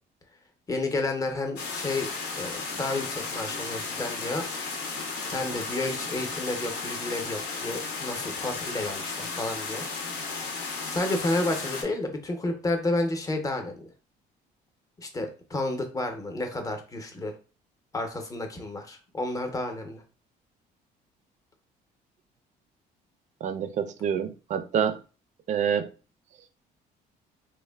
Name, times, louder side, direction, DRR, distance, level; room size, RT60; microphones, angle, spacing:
voice 1, 0.7-4.5 5.3-9.9 10.9-13.9 15.0-17.3 17.9-20.0, left 2 dB, 20° left, 0.6 m, -31 dB
sound 1, 1.6-11.8, left 4 dB, 80° left, 0.7 m, -34 dB
voice 2, 23.4-25.0 25.5-25.9, right 8 dB, 45° right, 0.4 m, -27 dB
3.1 x 2.1 x 2.2 m
cardioid pair, 110°, 17 cm